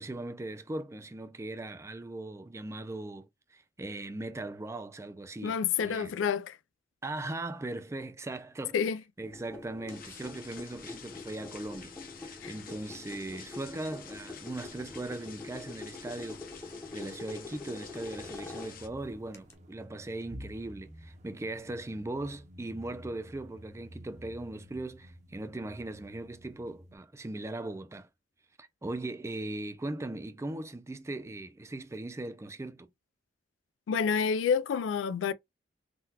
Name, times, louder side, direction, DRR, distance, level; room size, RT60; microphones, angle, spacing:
voice 1, 0.0-5.6 5.8-6.1 7.0-8.8 9.2-16.4 16.9-28.1 28.6-32.9, right 2 dB, 15° right, 0.4 m, -39 dB
voice 2, 5.4-6.6 8.7-9.0 12.4-12.5 33.9-35.3, left 6 dB, 85° left, 0.3 m, -28 dB
sound 1, 9.2-19.5, left 3 dB, 15° left, 0.7 m, -45 dB
sound 2, 9.9-18.9, left 6 dB, 50° left, 0.6 m, -50 dB
sound 3, 18.1-27.0, equal, 40° right, 0.7 m, -51 dB
3.8 x 2.2 x 2.7 m
head